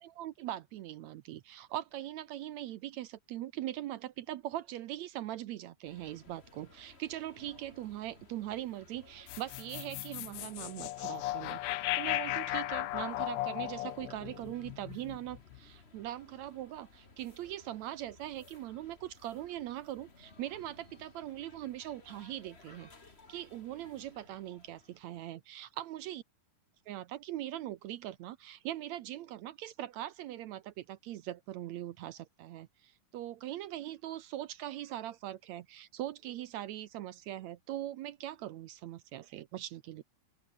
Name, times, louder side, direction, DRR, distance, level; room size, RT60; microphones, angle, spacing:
voice 1, 0.0-22.9 23.3-26.2 26.9-40.0, right 13 dB, 75° right, 1.7 m, -41 dB
sound 1, 5.8-25.3, left 3 dB, 20° left, 2.3 m, -59 dB
sound 2, 9.3-15.6, left 16 dB, 80° left, 1.6 m, -36 dB
open air
omnidirectional pair, 3.9 m